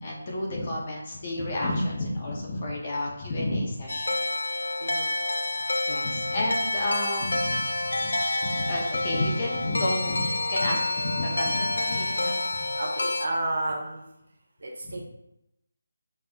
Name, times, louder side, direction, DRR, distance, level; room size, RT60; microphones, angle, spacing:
voice 1, 0.0-4.2 5.9-8.1 8.4-12.4, left 1 dB, 25° left, -1 dB, 0.5 m, -30 dB
sound 1, 3.9-13.3, left 2 dB, 90° left, 0.4 m, -28 dB
voice 2, 4.8-5.1 12.8-14.0 14.6-15.0, right 2 dB, 55° right, -1 dB, 0.7 m, -31 dB
5.3 x 2.4 x 2.2 m, 0.84 s
figure-of-eight pair, 180°, 0 cm